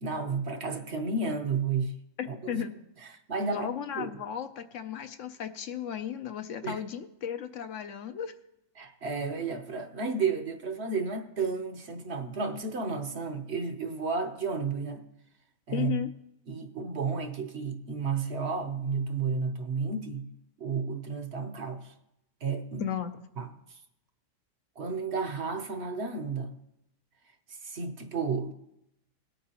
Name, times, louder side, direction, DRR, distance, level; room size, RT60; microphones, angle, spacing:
voice 1, 0.0-1.9 2.3-2.6 3.3-3.7 3.9-4.1 6.6-6.8 8.8-15.0 15.7-16.0 16.5-20.3 20.6-21.9 22.4-22.9 23.4-23.5 24.8-26.5 27.5-28.5, right 4 dB, 55° right, 4 dB, 1.1 m, -32 dB
voice 2, 2.2-2.7 3.5-8.3 15.7-16.1 22.8-23.1, left 9 dB, 70° left, 8 dB, 1.0 m, -35 dB
18.5 x 8.4 x 2.9 m, 0.84 s
omnidirectional pair, 1.4 m